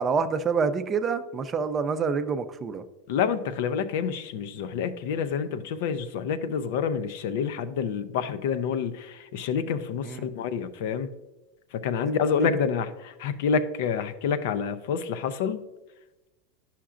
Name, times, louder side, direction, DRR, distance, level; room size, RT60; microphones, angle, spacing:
voice 1, 0.0-2.8 10.0-10.3 12.4-12.5, right 5 dB, 25° right, 10 dB, 0.4 m, -27 dB
voice 2, 3.1-11.1 11.7-15.6, left 6 dB, 70° left, 12 dB, 0.5 m, -28 dB
10.0 x 5.8 x 2.5 m, 1.1 s
supercardioid pair, 130°, 0 cm